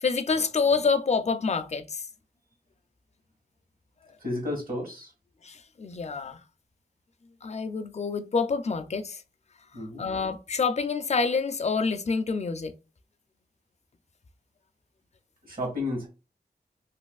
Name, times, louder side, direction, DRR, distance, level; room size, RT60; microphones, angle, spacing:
voice 1, 0.0-2.1 5.4-6.4 7.4-9.2 10.0-12.8, left 4 dB, 40° left, 0.4 m, -27 dB
voice 2, 4.2-5.1 9.7-10.0 15.4-16.1, left 1 dB, 55° right, 1.7 m, -32 dB
3.1 x 2.8 x 2.3 m
wide cardioid pair, 65°, 17 cm